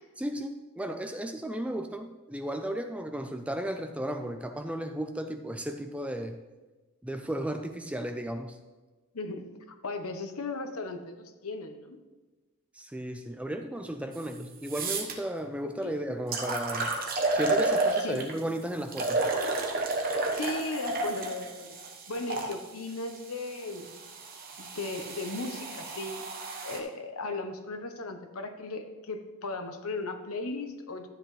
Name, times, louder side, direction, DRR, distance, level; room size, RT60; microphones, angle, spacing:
voice 1, 0.2-6.4 7.0-8.6 12.7-17.0 17.3-19.3, right 1 dB, 5° right, 6 dB, 0.4 m, -34 dB
voice 2, 9.1-12.0 15.8-16.0 18.0-18.3 20.3-21.8 22.1-23.9 24.6-26.2 26.6-31.1, left 3 dB, 80° left, 7 dB, 0.9 m, -36 dB
sound 1, 14.1-14.2 14.6-15.1 15.8-15.9 16.3-18.4 18.9-22.5 23.4-26.8, right 2 dB, 40° right, 1.1 m, -31 dB
12.5 x 7.9 x 3.2 m, 1.2 s
head